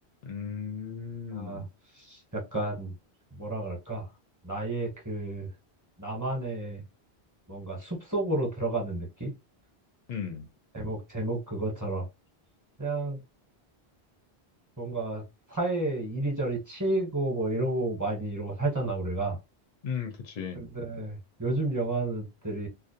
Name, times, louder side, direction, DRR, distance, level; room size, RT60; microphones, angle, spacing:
voice 1, 0.2-1.7 10.1-10.5 19.8-20.6, left 7 dB, 55° left, 0.5 m, -36 dB
voice 2, 1.3-1.6 2.0-2.9 3.3-4.1 4.4-5.5 6.0-6.8 7.5-9.3 10.7-12.1 12.8-13.2 14.8-15.2 15.5-19.4 20.6-22.7, right 2 dB, 20° right, 0.8 m, -31 dB
2.3 x 2.0 x 2.7 m
omnidirectional pair, 1.1 m